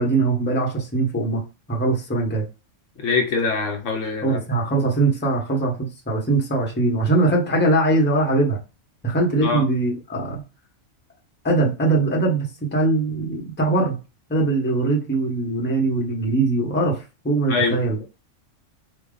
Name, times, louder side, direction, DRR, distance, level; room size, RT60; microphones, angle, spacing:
voice 1, 0.0-2.4 4.2-8.6 9.0-10.4 11.4-14.0 14.3-18.0, right 2 dB, 10° left, 0.8 m, -21 dB
voice 2, 3.0-4.4 9.4-9.6 17.5-17.8, left 4 dB, 70° left, 1.0 m, -23 dB
3.3 x 2.3 x 3.7 m
omnidirectional pair, 1.4 m